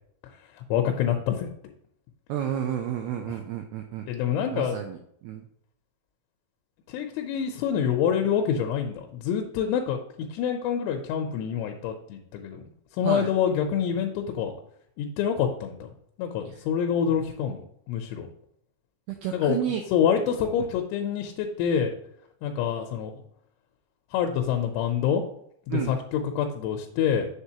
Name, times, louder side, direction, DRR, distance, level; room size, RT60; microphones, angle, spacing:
voice 1, 0.7-1.5 4.1-4.8 6.9-10.0 10.3-12.6 13.0-14.5 15.0-15.9 16.2-17.6 17.9-18.3 19.3-19.6 19.9-21.9 22.4-23.2 24.1-25.2 25.7-27.3, left 8 dB, 85° left, 4 dB, 3.1 m, -26 dB
voice 2, 2.3-4.0 4.5-5.0 5.2-5.4 13.0-13.3 16.5-16.6 19.1-19.8 20.6-20.7 25.7-25.9, right 10 dB, 90° right, 4 dB, 2.3 m, -31 dB
8.0 x 6.6 x 2.8 m, 0.70 s
omnidirectional pair, 5.4 m